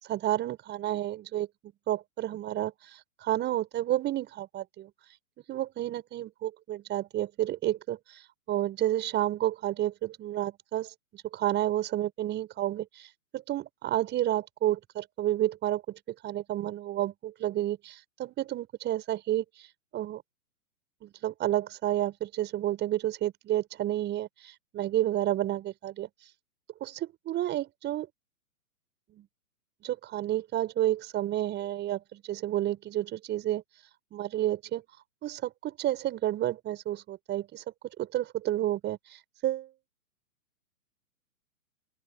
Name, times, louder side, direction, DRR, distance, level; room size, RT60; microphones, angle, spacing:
voice 1, 0.0-1.5 1.9-4.9 5.5-8.0 8.5-13.1 13.3-19.4 19.9-20.2 21.0-26.1 26.8-28.1 29.1-29.3 29.8-33.6 34.1-34.8 35.2-37.6 38.0-39.7, right 13 dB, 25° right, 6.2 m, -30 dB
open air
hypercardioid pair, 125°, 44 cm